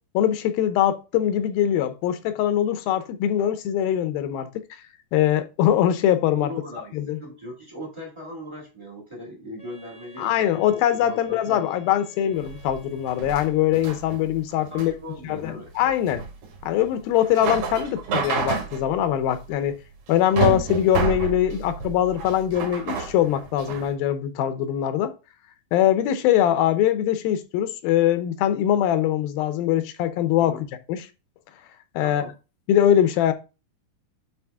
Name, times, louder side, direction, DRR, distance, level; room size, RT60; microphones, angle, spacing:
voice 1, 0.1-4.6 5.1-6.5 6.9-7.2 10.2-14.9 15.3-16.2 16.6-19.8 20.1-25.1 25.7-31.0 32.0-32.2 32.7-33.3, left 11 dB, 80° left, 2.5 m, -22 dB
voice 2, 6.3-11.7 14.7-15.7 30.4-30.6 32.0-32.3, equal, 20° right, 0.7 m, -39 dB
Wind instrument woodwind instrument, 9.6-14.0, left 2 dB, 30° left, 1.1 m, -52 dB
sound 1, 12.3-23.9, right 5 dB, 75° right, 3.5 m, -30 dB
8.7 x 4.1 x 3.5 m
omnidirectional pair, 4.2 m